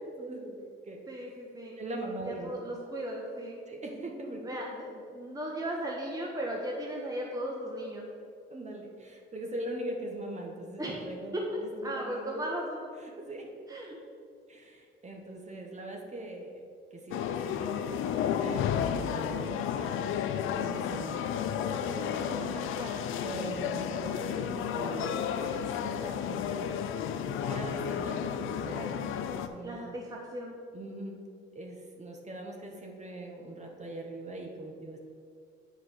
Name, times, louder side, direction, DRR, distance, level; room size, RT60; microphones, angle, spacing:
voice 1, 0.2-1.0 1.8-2.5 3.7-4.4 8.5-12.4 13.2-13.5 14.5-16.5 16.9-20.1 20.6-22.7 23.2-25.2 25.5-26.8 27.3-29.9 30.7-31.2 31.5-35.0, right 1 dB, 35° right, 0 dB, 1.6 m, -41 dB
voice 2, 1.1-1.8 2.2-3.6 4.4-8.1 10.8-11.0 11.3-11.4 11.8-12.9 13.7-14.0 22.1-23.1 24.3-25.3 29.6-30.6, right 1 dB, 20° right, -2 dB, 1.3 m, -37 dB
sound 1, 17.1-29.5, left 8 dB, 85° left, 0.5 m, -32 dB
7.8 x 4.9 x 6.4 m, 2.3 s
cardioid pair, 90°, 20 cm